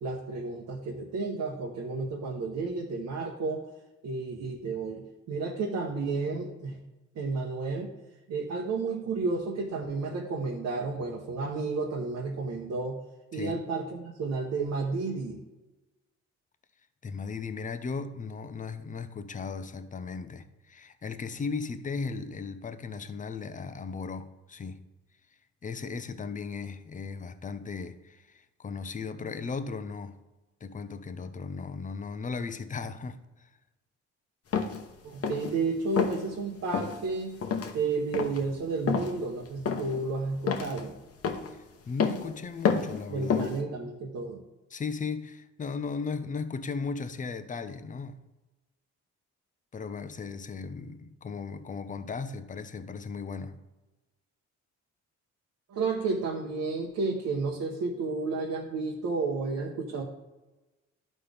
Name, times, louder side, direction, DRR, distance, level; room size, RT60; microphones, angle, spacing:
voice 1, 0.0-3.6 4.0-6.8 7.2-7.9 8.3-13.0 13.3-15.4 35.0-37.4 37.7-40.9 43.1-44.4 55.7-60.0, right 3 dB, 65° right, 1.0 m, -32 dB
voice 2, 17.0-24.8 25.6-30.2 30.6-33.5 41.5-43.5 44.7-48.2 49.7-53.6, left 5 dB, 25° left, 0.6 m, -36 dB
sound 1, 34.5-34.8 35.2-35.6 36.0-36.2 36.7-37.0 37.4-37.7 38.1-38.4 38.9-39.1 39.7-40.0 40.5-40.8 41.2-41.5 42.0-42.3 42.6-43.0 43.3-43.6, left 6 dB, 50° left, 1.0 m, -28 dB
11.5 x 4.2 x 3.4 m
cardioid pair, 90°, 30 cm